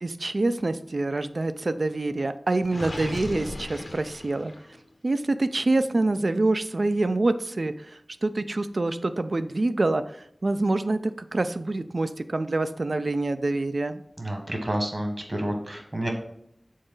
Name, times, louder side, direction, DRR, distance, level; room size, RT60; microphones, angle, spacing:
voice 1, 0.0-4.5 5.0-14.0, right 2 dB, 65° right, 11 dB, 0.4 m, -26 dB
Gurgling, 2.7-4.8, left 1 dB, 55° left, 0.7 m, -37 dB
voice 2, 14.2-16.1, right 1 dB, 45° right, 2 dB, 1.4 m, -29 dB
6.3 x 3.9 x 3.8 m, 0.72 s
wide cardioid pair, 55°, 0 cm